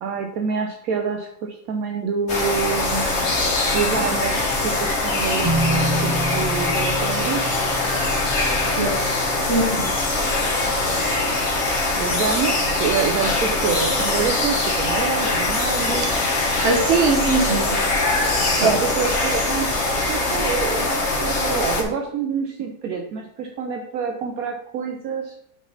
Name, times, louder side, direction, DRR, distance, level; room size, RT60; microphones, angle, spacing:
voice 1, 0.0-3.2 3.5-7.4 12.0-16.1 18.6-25.4, right 6 dB, 70° right, 2 dB, 1.1 m, -27 dB
sound 1, 2.3-21.8, left 2 dB, 45° left, 1.3 m, -22 dB
sound 2, 5.4-11.0, equal, 20° right, 1.1 m, -29 dB
voice 2, 9.4-9.9 16.0-16.2 16.6-17.8 18.2-18.8, right 3 dB, 50° right, 3 dB, 1.2 m, -22 dB
6.2 x 3.9 x 5.4 m, 0.72 s
omnidirectional pair, 1.7 m